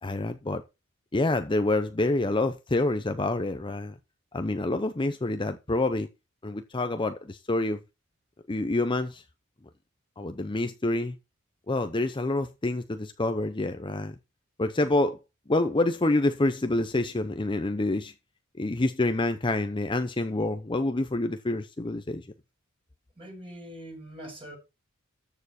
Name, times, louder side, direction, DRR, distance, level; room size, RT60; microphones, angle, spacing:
voice 1, 0.0-0.6 1.1-3.9 4.3-6.1 6.4-7.8 8.5-9.2 10.2-11.2 11.7-14.1 14.6-15.2 15.5-18.1 18.6-22.3, left 2 dB, 25° left, 0.7 m, -27 dB
voice 2, 23.2-24.6, equal, 25° right, 5.6 m, -43 dB
13.5 x 7.0 x 4.2 m
head